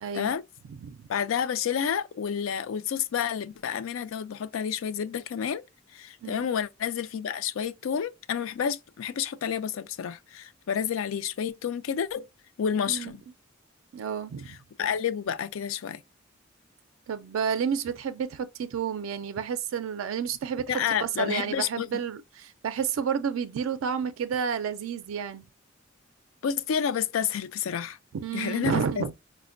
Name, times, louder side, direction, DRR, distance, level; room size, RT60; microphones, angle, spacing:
voice 1, 0.0-0.3 0.8-1.0 6.2-6.5 12.9-13.1 13.9-14.5 17.1-20.7 21.0-25.5 28.1-29.1, right 7 dB, 85° right, 0.4 m, -30 dB
voice 2, 1.1-5.6 5.9-12.3 12.6-13.2 14.5-16.0 20.7-21.9 26.4-28.0 28.3-29.0, left 8 dB, 80° left, 0.4 m, -30 dB
4.9 x 2.1 x 2.4 m
head